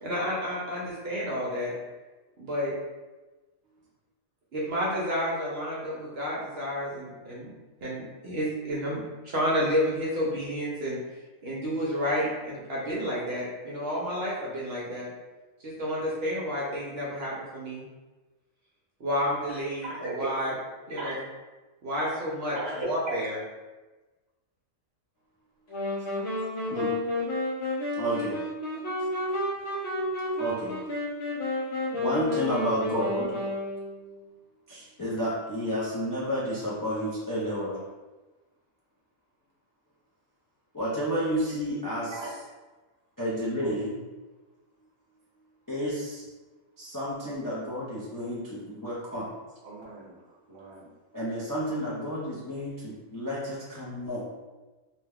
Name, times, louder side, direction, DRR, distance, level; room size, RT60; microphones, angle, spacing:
voice 1, 0.0-1.7 2.4-2.7 4.5-7.5 7.8-11.0 11.4-15.1 15.6-17.8 19.0-20.5 20.9-21.2 21.8-23.4, equal, 60° right, -5 dB, 0.8 m, -30 dB
voice 2, 19.8-20.3 21.0-21.2 22.5-23.2 42.1-42.3 49.6-50.2 50.5-50.9, right 2 dB, 25° right, -8 dB, 0.9 m, -36 dB
sound 1, 25.7-34.1, left 2 dB, 60° left, 0.9 m, -31 dB
voice 3, 28.0-28.4 30.4-30.8 31.9-33.4 34.7-37.8 40.7-42.4 43.2-44.0 45.7-46.3 46.8-49.2 51.1-54.2, equal, 30° left, -9 dB, 0.3 m, -31 dB
2.8 x 2.2 x 3.4 m, 1.2 s
omnidirectional pair, 1.4 m